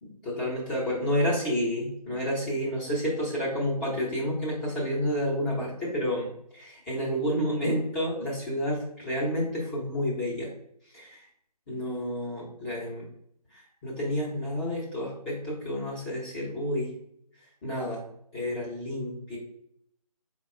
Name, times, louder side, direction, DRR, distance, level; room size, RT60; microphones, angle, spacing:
voice 1, 0.0-10.5 10.9-11.3 11.7-13.1 13.5-16.9 17.6-18.0 18.3-19.4, equal, 10° left, -7 dB, 0.7 m, -30 dB
4.5 x 2.2 x 4.2 m, 0.72 s
figure-of-eight pair, 160°, 20 cm